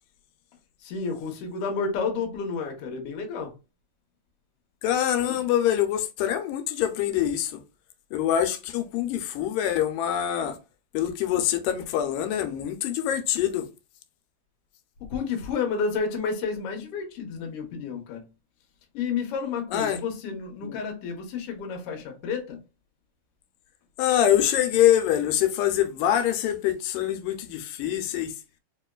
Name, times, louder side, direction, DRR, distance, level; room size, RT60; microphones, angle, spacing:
voice 1, 0.8-3.5 5.3-5.4 15.1-18.3 18.9-22.6, left 5 dB, 70° left, 1.4 m, -30 dB
voice 2, 4.8-7.6 8.1-10.6 10.9-13.7 19.7-20.0 20.6-20.8 24.0-28.4, left 11 dB, 85° left, 2.3 m, -25 dB
4.8 x 3.0 x 2.3 m
omnidirectional pair, 3.8 m